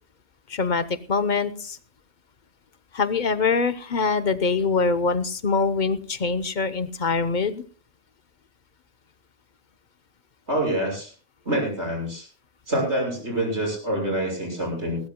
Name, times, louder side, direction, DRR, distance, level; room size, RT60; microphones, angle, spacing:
voice 1, 0.5-1.8 2.9-7.6, left 4 dB, 45° left, 12 dB, 0.9 m, -24 dB
voice 2, 10.5-11.1 11.4-12.3 12.7-15.0, right 1 dB, 90° right, 1 dB, 6.7 m, -26 dB
20.5 x 16.5 x 2.2 m, 0.38 s
omnidirectional pair, 1.1 m